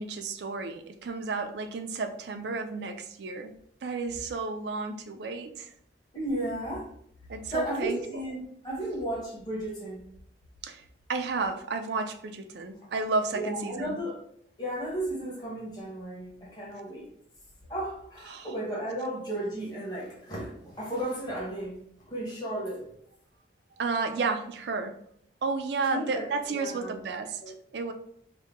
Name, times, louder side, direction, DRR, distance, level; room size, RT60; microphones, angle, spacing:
voice 1, 0.0-3.5 3.8-5.7 7.3-8.0 10.6-10.8 11.1-14.0 18.3-18.5 23.8-25.0 25.4-27.4 27.7-27.9, right 4 dB, 65° right, 6 dB, 0.4 m, -32 dB
voice 2, 6.1-6.9 7.5-8.4 8.6-10.0 12.8-12.9 13.3-14.2 14.6-17.1 17.7-21.8 22.1-22.9 25.9-27.0 27.3-27.6, right 1 dB, 25° left, -4 dB, 1.0 m, -34 dB
2.8 x 2.2 x 3.5 m, 0.68 s
head